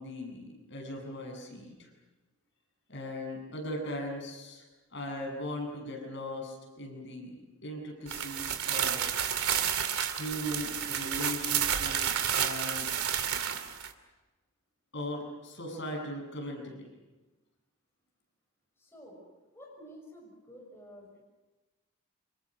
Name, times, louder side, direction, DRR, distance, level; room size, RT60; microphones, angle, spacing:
voice 1, 0.0-1.9 2.9-7.4 7.6-9.0 10.2-12.9 14.9-16.9, left 1 dB, 50° left, 1 dB, 7.8 m, -39 dB
sound 1, 8.1-13.9, right 9 dB, 80° right, 2.5 m, -30 dB
voice 2, 18.8-19.2 19.5-21.2, equal, 10° left, -1 dB, 6.3 m, -50 dB
29.0 x 27.0 x 6.4 m, 1.2 s
head